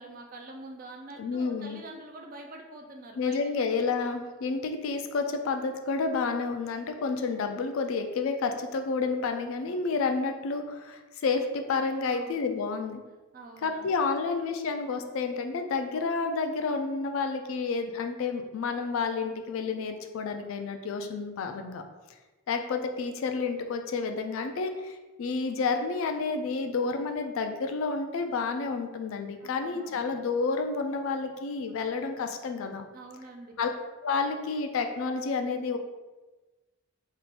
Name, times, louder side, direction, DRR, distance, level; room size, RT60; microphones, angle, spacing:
voice 1, 0.0-3.4 12.1-12.3 13.3-13.9 29.4-30.0 32.9-33.6, right 2 dB, 40° right, 2 dB, 0.4 m, -45 dB
voice 2, 1.2-1.8 3.2-13.0 13.6-21.8 22.5-32.8 33.6-33.7 34.0-35.8, left 4 dB, 70° left, 6 dB, 0.3 m, -30 dB
3.6 x 2.8 x 2.4 m, 1.2 s
head